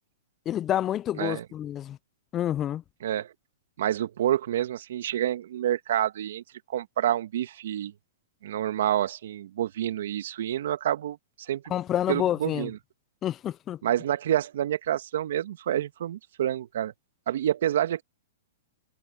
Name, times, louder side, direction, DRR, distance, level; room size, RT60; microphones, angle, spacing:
voice 1, 0.5-2.0 2.3-2.8 11.7-12.7 13.2-13.8, left 11 dB, 25° left, 0.4 m, -28 dB
voice 2, 3.0-3.3 3.8-6.4 6.7-7.9 8.4-11.6 12.1-12.8 13.8-16.9 17.3-18.0, right 11 dB, 65° right, 2.0 m, -28 dB
hypercardioid pair, 125°, 0 cm